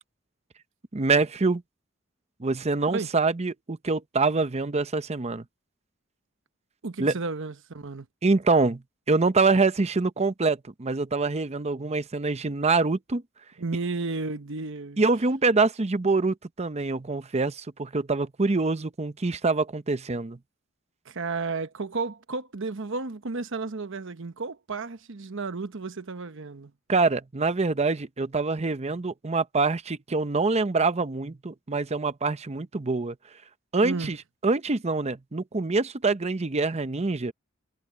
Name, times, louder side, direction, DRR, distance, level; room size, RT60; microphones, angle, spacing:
voice 1, 0.9-1.6 2.4-5.4 7.0-7.2 8.2-13.2 15.0-20.4 26.9-33.2 33.7-34.2 34.4-37.3, right 3 dB, 30° right, 0.7 m, -25 dB
voice 2, 6.8-8.1 13.6-15.0 21.0-26.7 33.8-34.1, right 3 dB, 65° right, 1.0 m, -33 dB
head